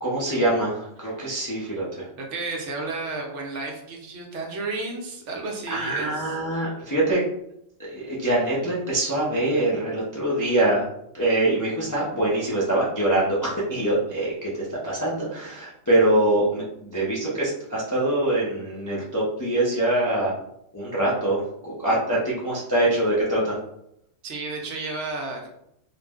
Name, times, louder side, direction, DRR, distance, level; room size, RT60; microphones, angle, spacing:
voice 1, 0.0-2.1 5.7-7.2 7.8-10.9 11.1-20.3 20.7-23.5, right 1 dB, 35° left, -7 dB, 0.3 m, -24 dB
voice 2, 2.1-6.4 24.2-25.5, right 3 dB, 70° right, 1 dB, 0.9 m, -32 dB
2.5 x 2.0 x 3.4 m, 0.78 s
omnidirectional pair, 1.3 m